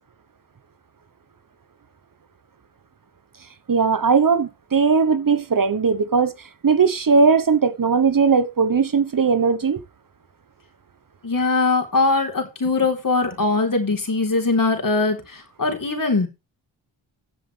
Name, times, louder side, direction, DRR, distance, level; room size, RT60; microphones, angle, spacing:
voice 1, 3.7-6.3 6.6-9.8, right 5 dB, 45° right, 1.1 m, -18 dB
voice 2, 11.2-16.3, left 3 dB, 45° left, 3.8 m, -21 dB
15.0 x 7.4 x 3.4 m
supercardioid pair, 45°, 48 cm